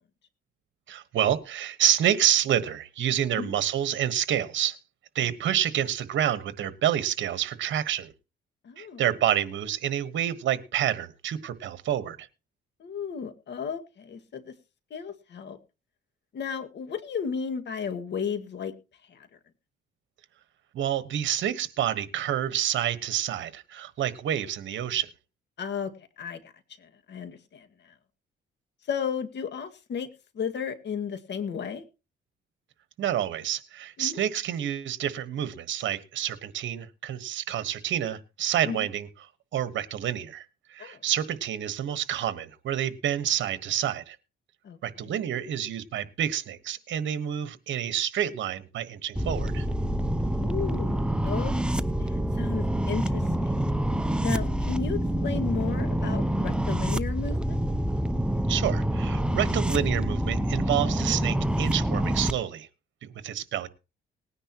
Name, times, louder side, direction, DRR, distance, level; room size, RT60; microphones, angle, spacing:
voice 1, 0.9-4.8 5.1-8.1 8.8-12.3 20.7-25.1 33.0-39.1 39.5-44.2 44.8-49.7 58.5-62.7 63.0-63.7, right 10 dB, 70° right, 13 dB, 1.3 m, -28 dB
voice 2, 8.7-9.0 12.8-14.5 14.9-15.6 16.3-18.7 19.1-19.2 25.6-25.9 26.2-26.5 26.8-27.7 28.9-30.1 30.4-31.8 34.0-34.2 38.6-38.8 40.8-41.0 44.6-44.8 50.4-53.6 54.2-57.6, left 6 dB, 60° left, 7 dB, 1.9 m, -34 dB
sound 1, 49.2-62.3, right 1 dB, 5° right, 0.7 m, -27 dB
19.5 x 9.9 x 3.0 m, 0.29 s
cardioid pair, 90°, 20 cm